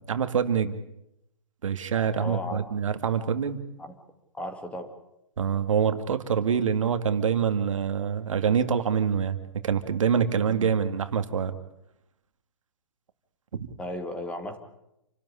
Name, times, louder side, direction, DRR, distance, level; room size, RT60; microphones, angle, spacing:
voice 1, 0.1-0.7 1.6-3.6 5.4-9.4 9.6-11.5 13.6-13.7, right 7 dB, 70° right, 9 dB, 2.2 m, -25 dB
voice 2, 2.2-2.6 3.8-3.9 4.3-4.9 10.5-10.7 13.8-14.6, left 1 dB, 5° left, 7 dB, 2.2 m, -35 dB
28.5 x 13.0 x 9.9 m, 0.86 s
hypercardioid pair, 140°, 17 cm